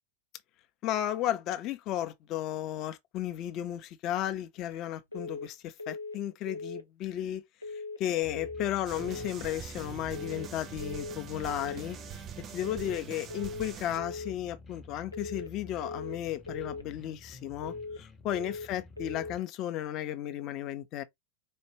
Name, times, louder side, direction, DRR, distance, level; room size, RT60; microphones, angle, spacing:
voice 1, 0.8-7.4 7.7-21.0, left 12 dB, 35° left, 0.6 m, -34 dB
sound 1, 5.1-5.5 5.8-6.2 6.5-6.9 7.6-8.0 8.3-8.7 9.0-9.4 10.1-10.5 10.8-11.2 11.5-11.9 12.6-13.0 13.3-13.7 14.0-14.4 15.1-15.5 15.8-16.2 16.5-16.9 17.6-18.0 18.3-18.7 19.0-19.4, left 3 dB, 85° left, 0.5 m, -40 dB
sound 2, 8.2-19.4, left 3 dB, 20° left, 0.9 m, -51 dB
sound 3, 8.8-14.0, right 9 dB, 30° right, 0.5 m, -44 dB
4.2 x 2.5 x 3.0 m
figure-of-eight pair, 90°, 0 cm